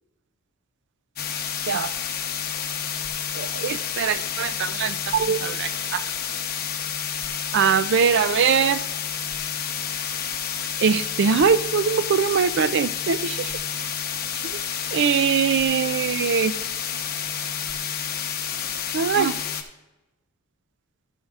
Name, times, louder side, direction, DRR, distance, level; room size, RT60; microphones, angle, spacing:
sound 1, 1.2-19.6, left 8 dB, 45° left, 0.9 m, -29 dB
voice 1, 3.4-6.0 7.5-8.8 10.8-13.5 14.4-14.5 14.9-16.5 18.9-19.4, right 6 dB, 55° right, 15 dB, 0.4 m, -22 dB
12.5 x 9.4 x 2.5 m, 1.0 s
head